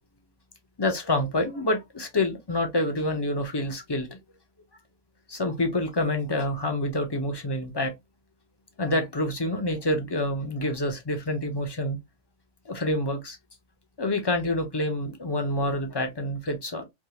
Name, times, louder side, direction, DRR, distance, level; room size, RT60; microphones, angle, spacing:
voice 1, 0.8-4.2 5.3-7.9 8.8-12.0 12.7-13.4 14.0-16.8, left 1 dB, 30° left, 0.5 m, -27 dB
3.5 x 2.3 x 2.8 m
omnidirectional pair, 1.5 m